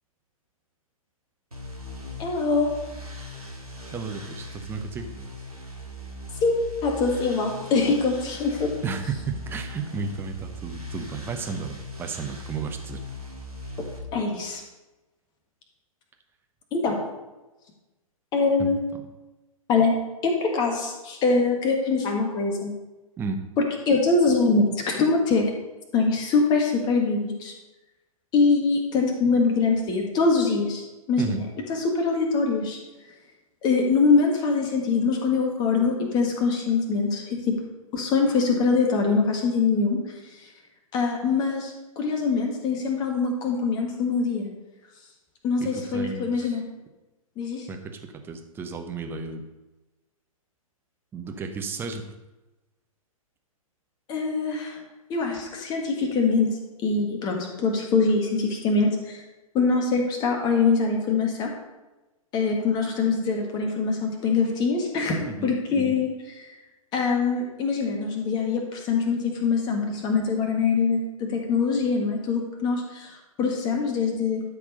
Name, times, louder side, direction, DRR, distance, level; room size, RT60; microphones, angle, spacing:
sound 1, 1.5-14.0, left 1 dB, 85° right, 2.3 m, -39 dB
voice 1, 2.2-2.7 6.4-8.7 14.1-14.6 16.7-17.0 18.3-18.8 19.7-19.9 20.2-22.7 23.8-25.4 25.9-27.5 28.3-30.8 31.1-32.8 33.6-37.6 37.9-40.0 40.9-44.5 45.4-46.6 47.4-47.7 54.1-54.8 55.1-56.6 56.8-59.2 59.5-61.5 62.3-66.1 66.9-73.1 73.4-74.4, left 4 dB, 20° left, 2 dB, 1.7 m, -23 dB
voice 2, 3.9-5.1 8.8-13.0 18.6-18.7 23.2-23.4 31.2-31.4 45.6-46.6 47.7-49.4 51.1-52.1 65.3-65.9, right 4 dB, 10° right, 5 dB, 0.8 m, -33 dB
12.0 x 4.8 x 5.3 m, 1.1 s
figure-of-eight pair, 120°, 18 cm